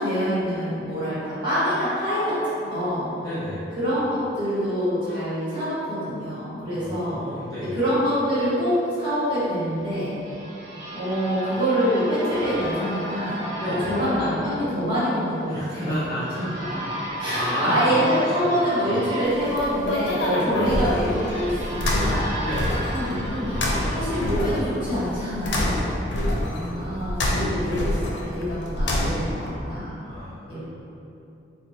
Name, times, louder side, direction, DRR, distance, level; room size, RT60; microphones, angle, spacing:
voice 1, 0.0-3.1 3.8-7.2 7.6-10.1 10.9-16.0 16.3-16.4 16.7-16.8 17.2-22.3 22.9-23.5 23.9-26.3 26.7-30.0 30.5-30.6, equal, 25° right, -14 dB, 1.2 m, -25 dB
voice 2, 3.2-3.6 6.7-7.8 13.6-14.0 15.4-16.5 17.3-19.0 20.3-20.6 22.4-22.8 26.1-27.1 30.0-30.6, equal, 20° left, -12 dB, 0.6 m, -32 dB
sound 1, 9.6-25.3, right 1 dB, 80° right, 0.7 m, -35 dB
sound 2, 19.3-29.5, left 1 dB, 80° left, 0.4 m, -26 dB
3.4 x 2.2 x 2.7 m, 2.9 s
head